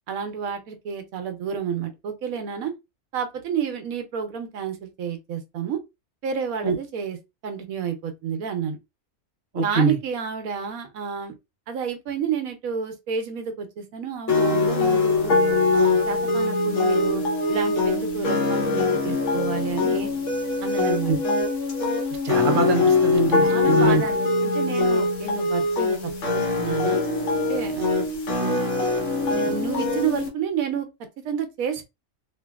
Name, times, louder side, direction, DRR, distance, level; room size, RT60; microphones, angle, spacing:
voice 1, 0.1-2.7 3.1-5.8 6.2-7.2 7.4-8.8 9.6-11.3 11.7-15.3 15.7-17.2 17.5-20.1 20.6-21.1 23.4-27.0 27.5-28.1 28.4-28.6 29.4-30.9 31.2-31.8, right 7 dB, 75° right, 1.0 m, -30 dB
voice 2, 9.5-10.0 21.1-21.2 22.2-24.0, right 4 dB, 50° right, 0.6 m, -23 dB
sound 1, 14.3-30.3, left 3 dB, 60° left, 1.2 m, -22 dB
2.8 x 2.5 x 2.3 m
omnidirectional pair, 1.5 m